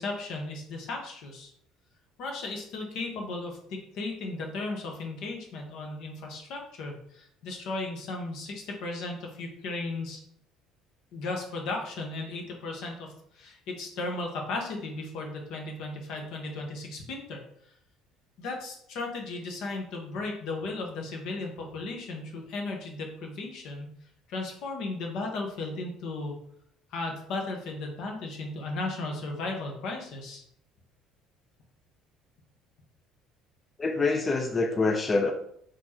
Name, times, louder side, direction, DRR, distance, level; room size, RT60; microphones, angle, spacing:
voice 1, 0.0-1.5 2.2-10.2 11.1-17.4 18.4-23.9 24.3-26.4 26.9-30.4, left 2 dB, 70° left, 2 dB, 1.0 m, -35 dB
voice 2, 33.8-35.3, left 3 dB, 25° left, 4 dB, 0.5 m, -25 dB
4.2 x 3.2 x 2.9 m, 0.69 s
supercardioid pair, 90°, 0 cm